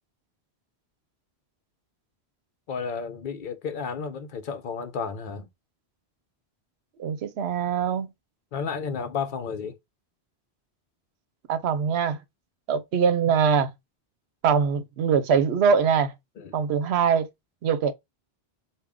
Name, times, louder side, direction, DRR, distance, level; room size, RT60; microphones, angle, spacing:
voice 1, 2.7-5.5 8.5-9.8 16.4-16.6, left 6 dB, 55° left, 0.7 m, -32 dB
voice 2, 7.0-8.1 11.5-12.2 12.7-13.7 14.4-16.1 16.5-17.3 17.6-17.9, right 6 dB, 80° right, 0.9 m, -23 dB
3.6 x 2.3 x 3.3 m
omnidirectional pair, 1.1 m